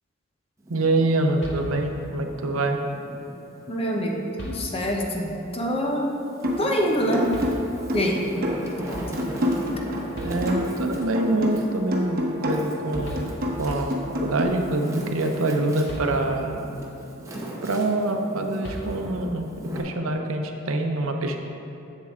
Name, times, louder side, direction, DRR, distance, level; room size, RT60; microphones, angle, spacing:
Wind, 0.6-3.4 3.9-5.2 5.8-19.8, right 1 dB, 15° right, 0.9 m, -38 dB
voice 1, 0.7-2.8 10.2-13.2 13.6-16.7 17.6-21.4, right 2 dB, 90° right, 4 dB, 0.7 m, -25 dB
sound 1, 1.4-2.2 3.7-3.8 4.4-5.1 7.3-8.1 9.8-9.9 10.1-11.0 12.7-12.8 13.0-13.8 15.9-16.7 18.6-19.4, equal, 60° left, 1.9 m, -38 dB
voice 2, 3.7-6.1 6.6-7.4 7.9-8.2 8.6-9.1 14.4-14.5, equal, 30° left, 0 dB, 0.8 m, -26 dB
sound 2, 6.4-6.8 7.1-10.8 11.1-14.4, equal, 45° right, 1.0 m, -28 dB
7.4 x 7.4 x 3.7 m, 2.8 s
head